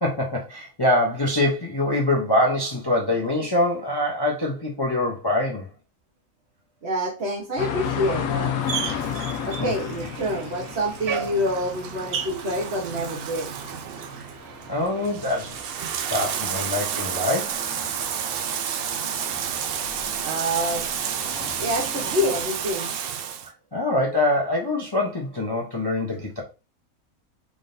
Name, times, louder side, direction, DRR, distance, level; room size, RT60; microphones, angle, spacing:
voice 1, 0.0-5.7 9.6-9.7 14.7-15.6 16.1-17.7 23.7-26.4, left 1 dB, 20° left, 0.7 m, -24 dB
voice 2, 6.8-8.5 9.4-13.5 20.2-20.8 21.6-22.9, equal, 50° right, 1.3 m, -27 dB
sound 1, 7.6-22.4, left 8 dB, 85° left, 1.1 m, -35 dB
Bathtub (filling or washing), 8.6-23.5, right 8 dB, 70° right, 0.5 m, -31 dB
4.9 x 3.7 x 2.6 m
omnidirectional pair, 1.5 m